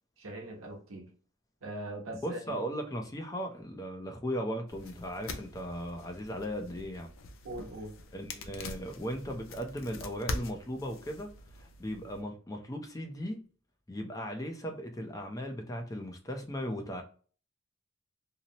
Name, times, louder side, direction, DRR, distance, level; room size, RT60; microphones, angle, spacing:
voice 1, 0.2-1.1 1.6-2.6 7.4-7.9, right 1 dB, 90° right, 0.9 m, -41 dB
voice 2, 2.2-7.1 8.1-11.3 11.6-13.4 13.9-17.0, equal, 15° left, 0.5 m, -37 dB
sound 1, 4.7-12.2, left 2 dB, 70° left, 0.5 m, -43 dB
2.8 x 2.0 x 2.7 m
head